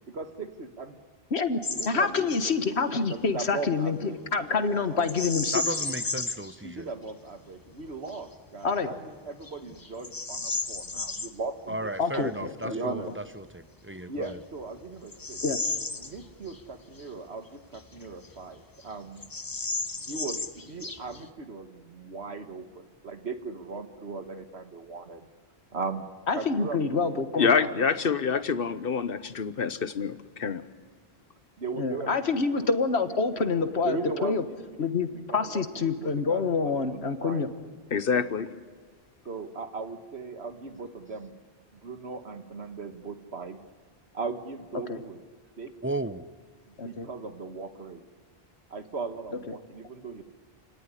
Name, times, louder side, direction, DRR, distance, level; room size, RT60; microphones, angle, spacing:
voice 1, 0.1-1.0 1.7-5.0 6.6-12.3 12.6-13.1 14.1-15.4 16.0-19.2 20.0-25.3 25.7-26.1 26.3-27.8 28.1-28.2 31.6-32.7 33.1-33.5 33.8-37.5 38.1-38.3 39.3-41.4 41.7-43.6 44.1-45.2 45.6-45.7 46.7-48.0 48.7-50.2, right 4 dB, 85° right, 1.9 m, -38 dB
Bird vocalization bird call bird song, 1.6-1.9 2.2-2.5 5.0-6.5 7.1-7.2 7.8-8.2 8.8-8.9 9.4-11.3 13.4-13.5 14.2-16.6 17.0-17.1 17.7-18.5 18.8-18.9 19.2-21.3, left 3 dB, 20° left, 0.8 m, -33 dB
voice 2, 1.9-5.6 8.6-8.9 12.0-13.0 15.4-15.6 26.3-27.5 31.8-34.4 34.8-37.5 44.9-45.0 46.8-47.1, left 4 dB, 85° left, 1.7 m, -27 dB
voice 3, 5.5-6.9 11.7-14.3 45.8-46.2, right 1 dB, 15° right, 0.7 m, -34 dB
voice 4, 27.4-30.6 37.9-38.5, left 6 dB, 60° left, 1.2 m, -26 dB
28.5 x 18.0 x 10.0 m
omnidirectional pair, 1.1 m